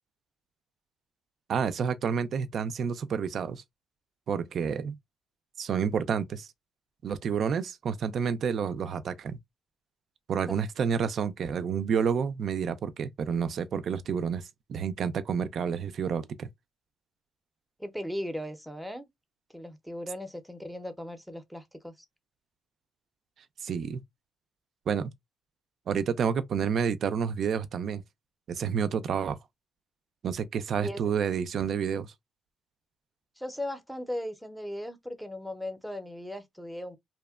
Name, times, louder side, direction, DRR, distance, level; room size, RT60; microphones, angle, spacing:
voice 1, 1.5-3.6 4.3-4.9 5.6-6.5 7.0-9.4 10.3-16.5 23.6-24.0 24.9-25.1 25.9-28.0 28.5-29.4 30.2-32.1, right 7 dB, 60° right, 0.3 m, -29 dB
voice 2, 17.8-19.1 19.5-22.1 30.8-31.0 33.4-37.0, left 1 dB, ahead, 0.6 m, -37 dB
2.7 x 2.1 x 2.2 m
cardioid pair, 90°, 0 cm